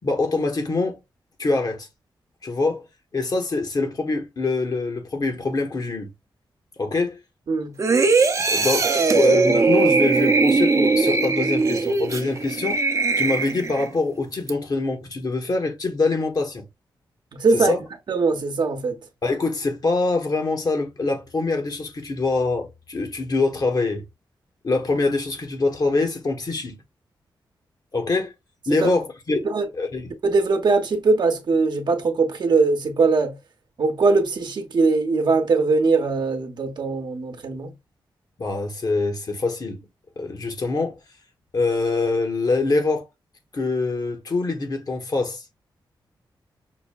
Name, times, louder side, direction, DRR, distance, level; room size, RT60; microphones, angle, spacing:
voice 1, 0.0-1.0 1.4-1.9 2.4-2.8 3.1-6.1 6.8-7.2 8.4-12.8 13.2-16.6 17.5-17.8 19.2-24.0 24.6-26.8 27.9-28.3 28.7-29.4 29.7-30.1 38.4-39.8 40.2-41.0 41.5-43.0 43.5-45.4, left 3 dB, 50° left, 1.2 m, -24 dB
sound 1, 7.8-13.9 14.3-14.5, right 4 dB, 40° right, 0.6 m, -20 dB
voice 2, 17.3-17.7 18.1-19.0 28.8-28.9 29.4-29.7 30.2-33.4 33.8-37.7, right 4 dB, 60° right, 0.9 m, -21 dB
6.0 x 2.2 x 2.2 m
cardioid pair, 75°, 8 cm